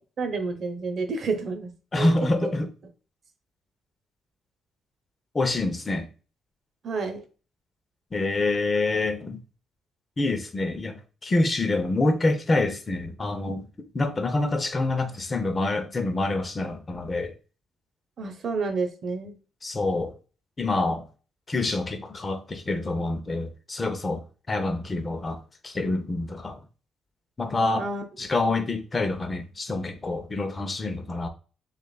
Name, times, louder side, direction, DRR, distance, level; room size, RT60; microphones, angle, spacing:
voice 1, 0.2-2.5 6.8-7.2 18.2-19.4 27.7-28.0, right 4 dB, 55° right, 0.9 m, -30 dB
voice 2, 1.9-2.7 5.3-6.1 8.1-9.4 10.2-13.7 13.9-17.3 19.6-20.2 20.6-21.1 21.5-26.6 27.4-27.9 28.2-31.3, left 2 dB, 30° left, 0.7 m, -26 dB
6.3 x 2.5 x 2.3 m
cardioid pair, 90°, 0 cm